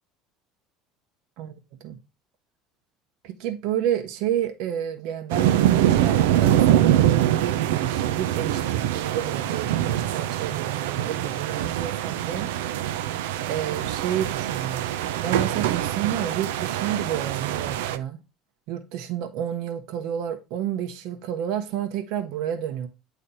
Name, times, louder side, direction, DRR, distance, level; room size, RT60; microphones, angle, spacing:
voice 1, 1.4-2.0 3.2-7.1 7.7-12.5 13.4-14.8 15.2-18.2 18.7-22.9, right 10 dB, 70° right, 1.1 m, -30 dB
sound 1, 5.3-18.0, right 12 dB, 85° right, 0.5 m, -24 dB
8.8 x 3.2 x 4.0 m
supercardioid pair, 100°, 0 cm